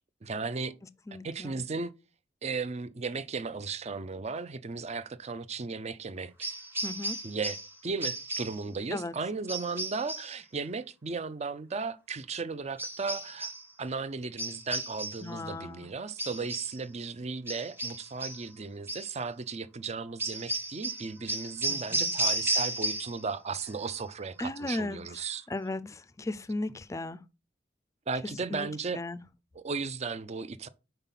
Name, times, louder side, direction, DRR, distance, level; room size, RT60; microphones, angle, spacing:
voice 1, 0.2-0.8 1.2-1.9 2.4-6.5 7.2-13.5 13.8-25.5 28.1-29.0 29.5-30.7, right 4 dB, 35° right, 0.5 m, -36 dB
voice 2, 1.1-1.6 6.8-7.2 8.9-9.1 15.2-15.9 21.7-22.1 24.4-25.0 25.5-27.2 28.5-28.7 28.9-29.2, left 2 dB, 15° left, 0.4 m, -36 dB
sound 1, 6.4-7.7 8.0-8.6 9.5-10.4 12.8-13.7 14.4-15.3 16.2-16.8 17.5-18.5 18.9-19.1 20.2-23.2 23.5-24.0, right 2 dB, 15° right, 1.3 m, -33 dB
5.4 x 4.5 x 5.7 m
head